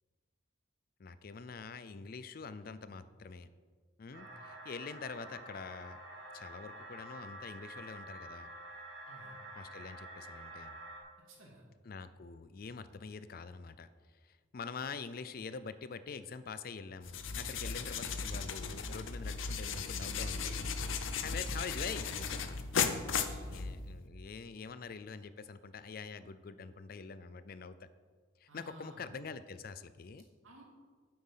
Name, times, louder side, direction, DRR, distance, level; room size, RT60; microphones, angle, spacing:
voice 1, 1.0-3.5 4.0-6.0 6.3-8.5 9.6-10.8 11.8-13.9 14.2-22.7 23.5-27.9 28.4-30.2, left 5 dB, 45° left, 13 dB, 0.4 m, -45 dB
sound 1, 4.1-11.0, right 1 dB, 65° right, 2.6 m, -49 dB
voice 2, 9.1-9.4 11.3-11.6 23.3-23.7 28.5-29.0 30.4-30.6, right 1 dB, 85° right, -1 dB, 2.5 m, -55 dB
sound 2, 17.0-24.0, left 5 dB, 75° left, 0.7 m, -36 dB
9.0 x 7.8 x 5.6 m, 1.5 s
head